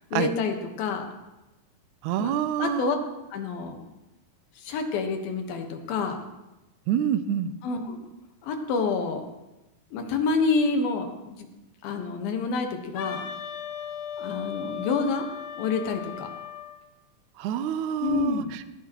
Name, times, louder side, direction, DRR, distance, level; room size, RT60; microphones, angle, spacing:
voice 1, 0.1-1.1 2.2-2.3 2.6-3.0 3.3-3.8 4.6-6.2 7.6-8.1 8.4-9.2 9.9-11.5 11.8-13.2 14.2-15.2 15.6-16.3 18.0-18.5, left 4 dB, 85° left, 4 dB, 3.2 m, -28 dB
voice 2, 2.0-3.0 6.9-7.5 17.4-18.7, right 10 dB, 80° right, 12 dB, 1.7 m, -27 dB
Wind instrument woodwind instrument, 12.9-16.8, left 7 dB, 70° left, 2.3 m, -36 dB
18.5 x 14.0 x 3.1 m, 1.0 s
omnidirectional pair, 4.2 m